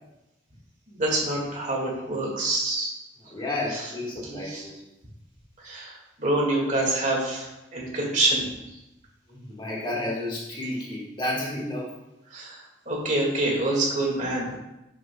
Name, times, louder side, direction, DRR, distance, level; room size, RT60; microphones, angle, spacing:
voice 1, 0.9-2.9 3.7-3.9 4.2-4.7 5.6-8.5 12.3-14.5, right 2 dB, 40° right, -2 dB, 1.9 m, -26 dB
voice 2, 3.3-4.7 9.3-11.9, left 1 dB, 25° left, -5 dB, 1.6 m, -31 dB
10.0 x 6.3 x 2.3 m, 0.96 s
head